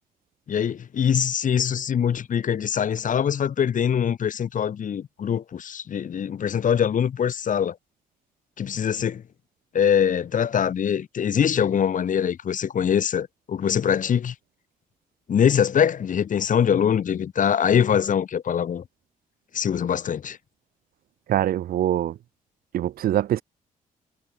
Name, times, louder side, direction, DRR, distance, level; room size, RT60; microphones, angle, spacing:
voice 1, 0.5-7.8 8.6-9.2 9.7-14.3 15.3-18.8 19.5-20.4, left 8 dB, 60° left, 3.8 m, -23 dB
voice 2, 21.3-22.2 22.7-23.4, right 12 dB, 80° right, 1.8 m, -23 dB
cardioid pair, 75°, 15 cm